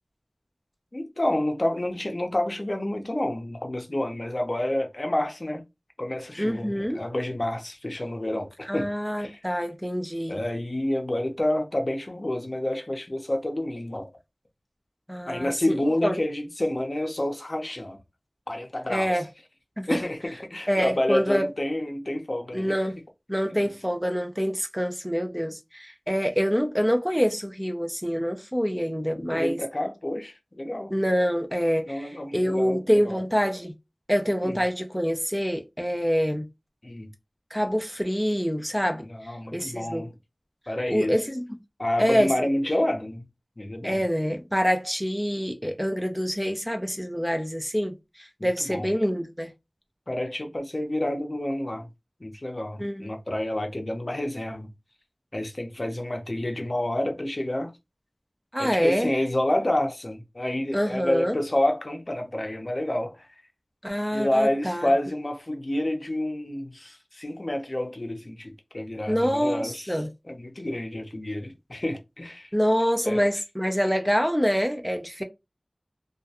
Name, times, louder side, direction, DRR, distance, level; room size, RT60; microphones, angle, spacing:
voice 1, 0.9-5.6 6.0-8.9 9.2-9.4 10.3-14.1 15.3-18.0 18.5-19.2 19.9-22.7 29.1-30.9 31.9-33.2 34.4-34.6 36.8-37.1 39.0-40.1 40.7-41.2 41.8-43.3 43.6-44.0 48.4-48.9 50.1-51.9 52.2-54.7 55.3-57.7 58.6-63.3 64.1-70.0 70.3-72.5 73.0-73.2, left 1 dB, 50° left, 0.6 m, -29 dB
voice 2, 6.4-7.0 8.7-10.4 15.1-15.5 16.0-16.1 18.9-19.2 19.8-20.0 20.7-21.5 22.5-23.0 23.3-29.6 30.9-33.7 34.1-36.5 37.5-39.1 39.5-40.1 40.9-41.4 42.0-42.3 43.8-49.5 52.8-53.1 58.5-59.1 60.7-61.4 63.8-64.9 69.1-70.1 72.5-75.2, equal, ahead, 0.4 m, -26 dB
2.3 x 2.1 x 2.8 m
wide cardioid pair, 45°, 0 cm